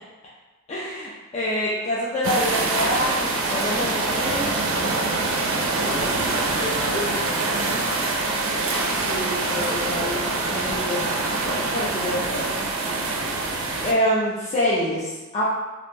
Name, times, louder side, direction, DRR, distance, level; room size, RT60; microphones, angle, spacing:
voice 1, 0.7-4.5 9.0-10.2 10.5-11.1 11.4-12.6 13.8-15.4, left 1 dB, 30° left, -7 dB, 0.4 m, -26 dB
sound 1, 2.2-13.9, right 3 dB, 75° right, 0.4 m, -25 dB
voice 2, 5.7-8.1, left 1 dB, 60° left, -8 dB, 1.1 m, -32 dB
2.5 x 2.1 x 3.2 m, 1.2 s
head